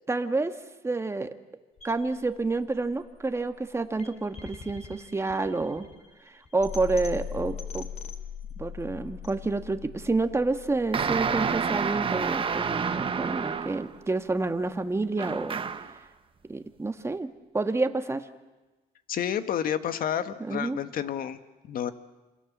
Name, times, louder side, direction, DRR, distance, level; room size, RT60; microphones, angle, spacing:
voice 1, 0.1-0.5 0.8-1.3 1.8-5.9 6.3-7.9 8.6-15.6 16.5-18.3 20.4-20.8, right 3 dB, 15° right, 8 dB, 1.8 m, -29 dB
sound 1, 1.8-13.8, left 7 dB, 40° left, 3.8 m, -42 dB
sound 2, 10.9-14.0 15.2-16.0, right 6 dB, 30° right, 1.3 m, -29 dB
voice 2, 19.1-21.4 21.7-21.9, left 9 dB, 60° left, 10 dB, 1.8 m, -30 dB
27.5 x 27.5 x 7.5 m, 1.2 s
cardioid pair, 110°, 17 cm